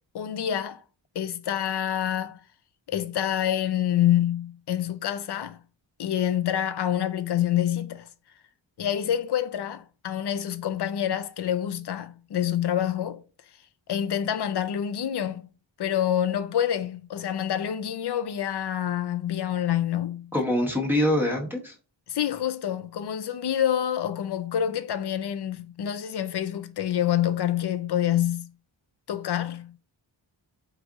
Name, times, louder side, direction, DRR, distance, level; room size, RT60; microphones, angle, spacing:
voice 1, 0.1-0.8 1.2-2.4 2.9-5.6 6.0-8.1 8.8-13.2 13.9-15.5 15.8-20.3 22.1-28.5 29.1-29.8, left 10 dB, 60° left, 0.5 m, -27 dB
voice 2, 20.3-21.7, left 1 dB, 5° right, 1.0 m, -24 dB
4.7 x 2.5 x 3.6 m
wide cardioid pair, 105°, 46 cm